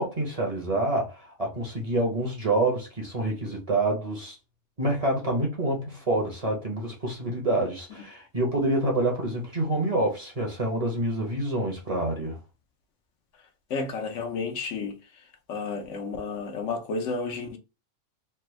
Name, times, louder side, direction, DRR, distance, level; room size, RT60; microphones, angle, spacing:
voice 1, 0.0-4.4 4.8-12.4, right 1 dB, 35° right, 0.8 m, -27 dB
voice 2, 13.7-15.0 15.5-17.6, left 4 dB, 75° left, 1.0 m, -31 dB
3.4 x 2.1 x 3.1 m
omnidirectional pair, 1.3 m